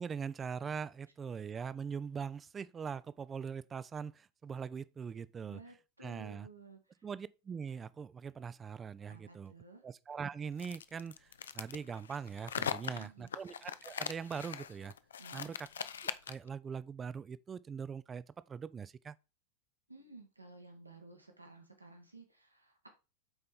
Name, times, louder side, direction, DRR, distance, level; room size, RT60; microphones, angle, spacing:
voice 1, 0.0-5.6 6.0-6.5 7.0-9.5 9.8-14.9 15.3-15.7 16.0-19.2, right 6 dB, 20° right, 0.4 m, -42 dB
voice 2, 5.4-7.0 9.1-9.8 12.8-13.3 15.2-15.5 19.9-22.9, right 3 dB, 85° right, 1.5 m, -55 dB
sound 1, 10.6-16.5, left 8 dB, 65° left, 0.4 m, -41 dB
7.8 x 4.4 x 3.6 m
figure-of-eight pair, 90°, 0 cm